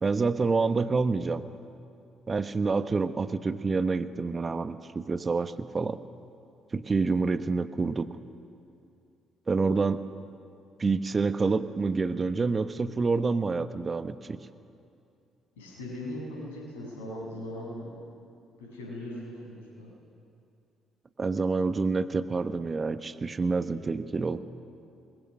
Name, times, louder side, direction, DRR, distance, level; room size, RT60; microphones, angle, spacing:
voice 1, 0.0-1.4 2.3-6.0 6.7-8.1 9.5-10.0 10.8-14.4 21.2-24.4, right 4 dB, 30° right, 11 dB, 1.1 m, -27 dB
voice 2, 15.6-18.1 18.6-19.9, left 1 dB, 80° left, -3 dB, 6.9 m, -39 dB
27.0 x 21.5 x 6.5 m, 2.6 s
figure-of-eight pair, 45°, 0 cm